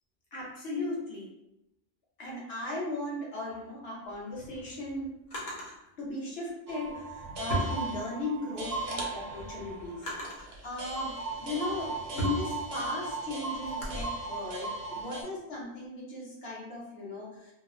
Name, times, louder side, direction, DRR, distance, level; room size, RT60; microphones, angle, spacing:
voice 1, 0.3-1.3 2.2-5.1 6.0-17.5, left 2 dB, 55° left, -5 dB, 1.1 m, -37 dB
Drawer open or close, 4.1-5.8 6.8-8.4 8.9-10.6 11.2-14.0, equal, 75° left, 1.2 m, -38 dB
sound 1, 6.7-15.2, right 3 dB, 65° right, 0.7 m, -37 dB
3.1 x 2.1 x 2.4 m, 0.86 s
omnidirectional pair, 1.3 m